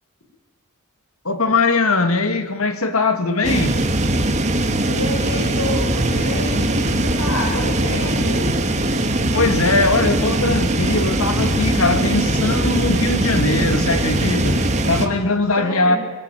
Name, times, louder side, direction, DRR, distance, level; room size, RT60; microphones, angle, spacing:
voice 1, 1.2-3.8 9.3-16.0, left 3 dB, 70° left, 2.3 m, -20 dB
sound 1, 3.4-15.1, right 1 dB, 30° right, 2.2 m, -20 dB
voice 2, 4.9-8.5 15.6-16.0, left 2 dB, 85° left, 6.2 m, -28 dB
25.5 x 22.0 x 9.2 m
head